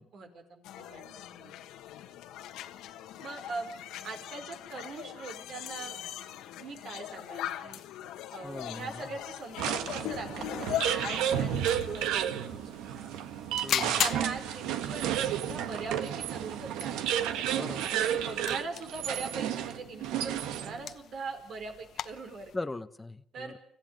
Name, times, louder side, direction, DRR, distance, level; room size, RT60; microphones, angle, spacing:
voice 1, 0.0-1.5 3.2-3.7 4.0-5.9 6.6-7.8 8.3-13.1 14.0-17.1 18.0-22.5 23.3-23.5, right 4 dB, 65° right, 5 dB, 5.2 m, -41 dB
sound 1, 0.6-12.1, left 12 dB, 90° left, 1.5 m, -40 dB
sound 2, 8.4-22.6, left 10 dB, 65° left, 0.9 m, -41 dB
voice 2, 8.4-8.9 13.6-14.0 17.5-17.9 22.5-23.5, left 2 dB, 15° left, 10 dB, 1.0 m, -39 dB
sound 3, 9.6-20.9, right 10 dB, 90° right, 1.3 m, -32 dB
26.0 x 15.0 x 9.1 m, 0.69 s
cardioid pair, 80°, 0 cm